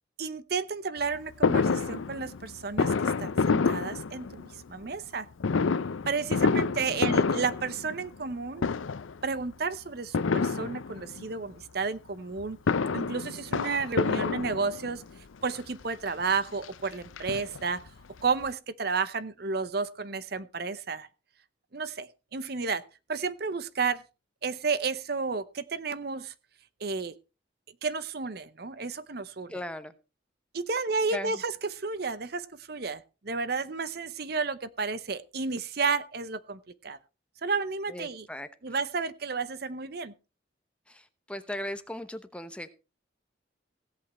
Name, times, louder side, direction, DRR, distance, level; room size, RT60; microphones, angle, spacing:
voice 1, 0.2-5.3 6.1-8.6 9.2-12.6 12.9-15.0 15.4-17.8 18.2-21.1 21.7-22.8 23.1-24.0 24.4-26.3 26.8-27.1 27.8-29.5 30.5-37.0 37.4-38.3 38.6-40.1, right 4 dB, 50° right, 15 dB, 0.7 m, -32 dB
Fireworks, 1.4-4.6 5.4-8.3 8.6-9.2 10.1-11.2 12.4-15.0 15.8-15.9 16.2-16.3 16.6-17.9 18.2-18.3 18.5-18.6, left 4 dB, 85° left, 0.6 m, -28 dB
voice 2, 6.5-7.2 29.5-29.9 30.7-30.8 31.1-31.4 37.9-38.7 40.9-42.7, left 1 dB, 5° left, 10 dB, 0.9 m, -39 dB
16.5 x 8.4 x 4.2 m, 0.31 s
head